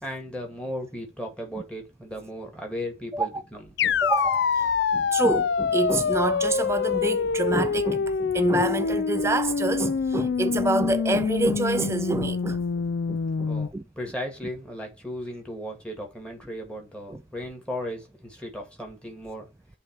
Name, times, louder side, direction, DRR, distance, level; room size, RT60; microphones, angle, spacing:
voice 1, 0.0-3.7 13.5-19.5, equal, 5° left, 2.1 m, -36 dB
sound 1, 3.8-13.7, left 6 dB, 65° left, 0.4 m, -25 dB
voice 2, 3.8-12.6 13.1-13.8 17.1-17.2, right 2 dB, 15° right, 0.3 m, -27 dB
8.4 x 3.2 x 4.7 m
head